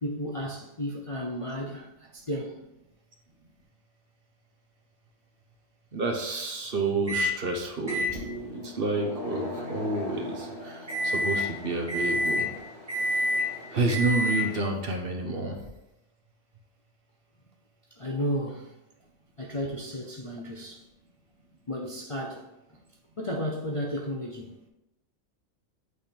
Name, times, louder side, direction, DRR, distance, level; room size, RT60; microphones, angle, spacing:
voice 1, 0.0-2.6 18.0-18.7 19.4-20.8 21.7-22.5 23.2-24.5, equal, 35° left, 0.5 m, -33 dB
voice 2, 5.9-8.2 8.5-12.5 13.7-15.7, right 2 dB, 50° right, 1.0 m, -29 dB
Microwave oven, 7.1-7.4 7.9-14.7, left 1 dB, 25° right, 1.8 m, -30 dB
8.3 x 3.5 x 4.4 m
omnidirectional pair, 1.4 m